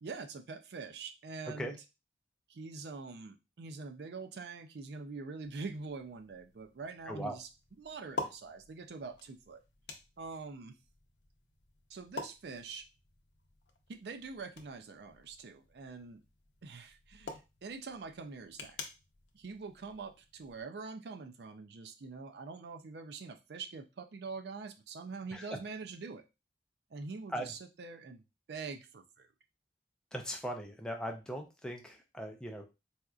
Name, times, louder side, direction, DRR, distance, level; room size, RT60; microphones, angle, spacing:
voice 1, 0.0-1.8 2.5-7.5 7.8-9.6 10.2-10.7 11.9-12.9 13.9-16.2 16.6-18.8 19.3-26.2 26.9-28.2 28.5-29.3, right 4 dB, 70° right, 7 dB, 0.4 m, -44 dB
sound 1, 5.4-20.6, left 3 dB, 80° left, 0.6 m, -49 dB
voice 2, 7.1-7.4 25.3-25.5 27.3-27.5 30.1-32.6, equal, 5° left, 2 dB, 0.4 m, -39 dB
4.2 x 2.4 x 2.3 m, 0.26 s
head